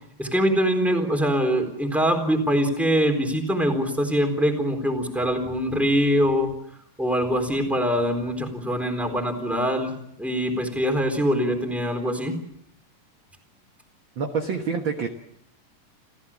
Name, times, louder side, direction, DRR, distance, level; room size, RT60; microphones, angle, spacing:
voice 1, 0.2-6.5 7.0-12.3, equal, ahead, 4 dB, 3.4 m, -23 dB
voice 2, 14.2-15.1, right 5 dB, 50° right, 4 dB, 1.6 m, -26 dB
29.0 x 15.0 x 7.3 m, 0.75 s
omnidirectional pair, 3.9 m